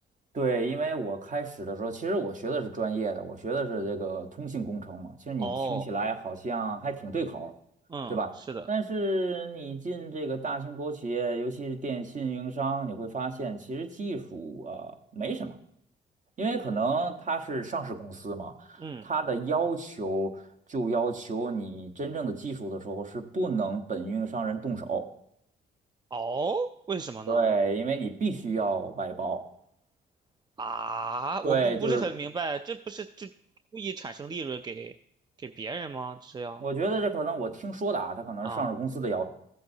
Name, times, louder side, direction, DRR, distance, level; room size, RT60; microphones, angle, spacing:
voice 1, 0.3-7.5 8.1-8.3 8.7-15.5 16.4-20.4 20.7-25.1 27.3-29.4 31.4-32.1 36.6-39.2, right 3 dB, 40° right, 5 dB, 1.1 m, -31 dB
voice 2, 5.4-5.9 7.9-8.7 18.8-19.1 26.1-27.5 30.6-33.3 33.7-34.9 35.4-36.6 38.4-38.7, right 4 dB, 20° right, 9 dB, 0.4 m, -34 dB
14.5 x 7.6 x 2.7 m, 0.73 s
cardioid pair, 90°, 20 cm